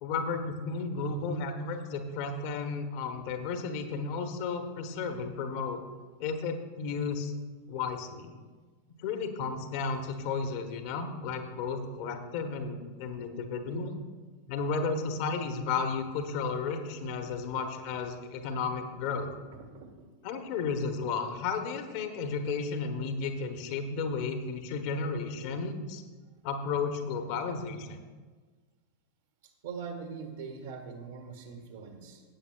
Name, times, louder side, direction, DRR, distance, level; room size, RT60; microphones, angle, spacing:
voice 1, 0.0-5.8 6.2-7.3 7.7-8.3 9.0-13.9 14.5-19.3 20.2-26.0 26.4-28.0, left 4 dB, 45° left, 6 dB, 1.0 m, -33 dB
voice 2, 19.5-19.9 29.6-32.2, right 5 dB, 55° right, 4 dB, 1.5 m, -42 dB
15.5 x 8.7 x 2.3 m, 1.4 s
figure-of-eight pair, 90°, 0 cm